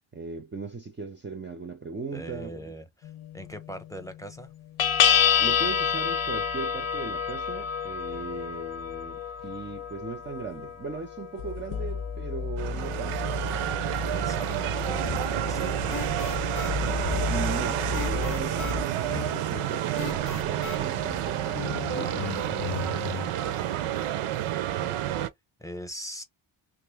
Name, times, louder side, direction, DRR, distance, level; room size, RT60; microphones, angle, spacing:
voice 1, 0.1-2.7 5.4-13.2 17.3-22.2, right 4 dB, 25° right, 0.5 m, -38 dB
voice 2, 2.1-4.5 14.1-16.1 25.6-26.2, equal, 5° left, 0.7 m, -42 dB
sound 1, 3.0-4.1 4.8-18.8, left 7 dB, 70° left, 0.8 m, -29 dB
sound 2, 12.6-25.3, right 12 dB, 90° right, 0.6 m, -29 dB
sound 3, 15.0-23.3, left 9 dB, 40° left, 0.4 m, -38 dB
3.2 x 2.6 x 3.4 m
cardioid pair, 95°, 50 cm